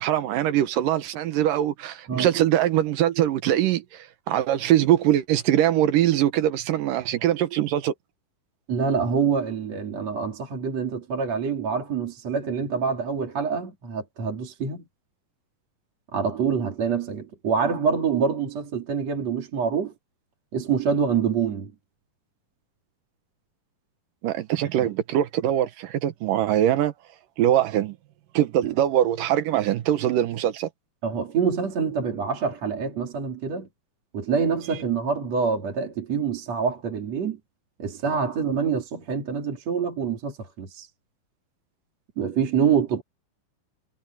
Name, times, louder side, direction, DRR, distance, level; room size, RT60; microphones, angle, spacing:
voice 1, 0.0-7.9 24.2-26.9 27.4-28.0 28.3-30.7, right 12 dB, 70° right, 2.5 m, -22 dB
voice 2, 8.7-14.8 16.1-19.9 20.5-21.7 24.8-24.9 28.6-28.7 31.0-33.7 34.1-37.4 37.8-40.9 42.2-43.0, right 6 dB, 50° right, 4.1 m, -26 dB
omnidirectional pair, 4.2 m